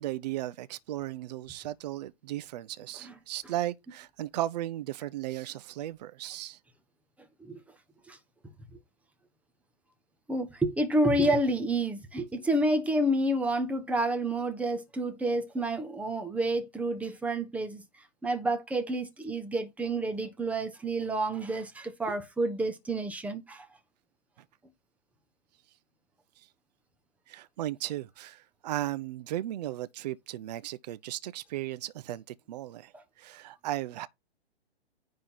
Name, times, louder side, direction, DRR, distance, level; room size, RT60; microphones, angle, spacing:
voice 1, 0.0-6.6 26.4-26.5 27.3-32.9 33.2-34.1, right 14 dB, 40° right, 0.6 m, -36 dB
voice 2, 10.3-17.8 18.2-23.7 32.9-33.0, right 1 dB, 5° right, 1.2 m, -29 dB
9.8 x 3.8 x 5.6 m
figure-of-eight pair, 125°, 33 cm